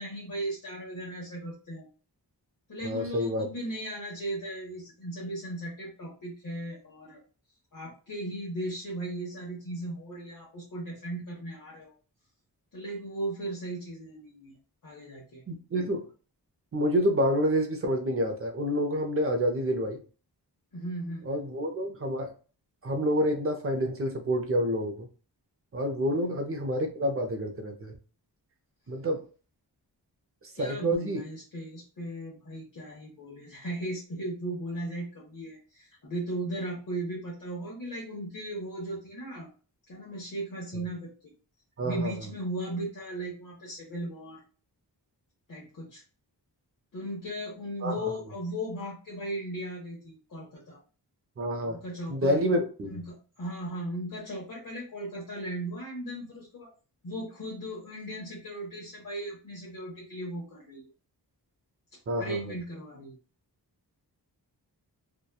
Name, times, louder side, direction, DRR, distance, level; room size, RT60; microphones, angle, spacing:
voice 1, 0.0-1.9 2.7-7.2 7.7-11.9 12.7-14.5 14.8-15.4 20.7-21.5 30.6-39.5 39.9-41.3 41.8-44.4 45.5-46.0 46.9-50.8 51.7-52.4 52.9-56.7 57.0-60.8 62.2-63.2, right 1 dB, 50° left, -4 dB, 0.7 m, -37 dB
voice 2, 2.8-3.5 15.5-16.1 16.7-20.0 21.2-22.3 22.8-25.1 25.7-28.0 28.9-29.2 30.4-31.3 40.7-40.8 41.8-42.3 47.8-48.0 51.4-51.8 52.1-53.0 62.1-62.5, equal, 35° right, 5 dB, 0.5 m, -28 dB
2.8 x 2.2 x 2.2 m, 0.38 s
wide cardioid pair, 115°, 41 cm